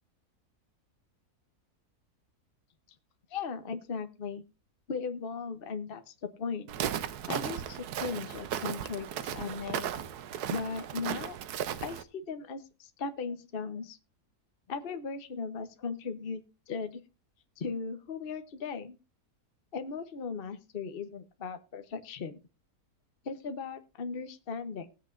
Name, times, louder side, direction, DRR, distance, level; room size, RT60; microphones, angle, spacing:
voice 1, 3.3-4.4 4.9-6.7 7.3-9.9 10.5-11.4 11.8-14.0 14.7-16.4 16.7-17.0 17.6-19.0 19.7-22.4 23.2-24.9, left 5 dB, 40° left, 8 dB, 1.0 m, -37 dB
Walk footsteps, 6.7-12.0, right 10 dB, 85° right, 1.3 m, -36 dB
19.5 x 8.1 x 2.5 m, 0.30 s
omnidirectional pair, 1.6 m